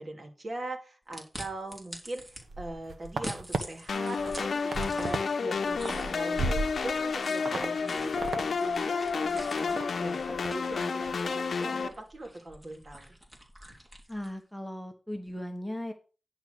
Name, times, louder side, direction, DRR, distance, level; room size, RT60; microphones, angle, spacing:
voice 1, 0.0-13.1, right 2 dB, 45° right, 2 dB, 3.0 m, -41 dB
sound 1, 1.1-2.4 3.0-5.4 5.7-14.4, equal, 20° right, 3.0 m, -46 dB
sound 2, 2.4-3.6 4.0-5.3 5.6-7.1 7.5-7.7 8.0-8.4 8.7-8.8 9.2-9.8 10.2-10.5 10.9-11.2, right 3 dB, 75° right, 1.3 m, -34 dB
sound 3, 3.9-11.9, left 5 dB, 75° left, 0.8 m, -31 dB
voice 2, 14.1-15.9, left 1 dB, ahead, 6 dB, 1.2 m, -37 dB
10.5 x 4.5 x 6.2 m, 0.35 s
cardioid pair, 60°, 0 cm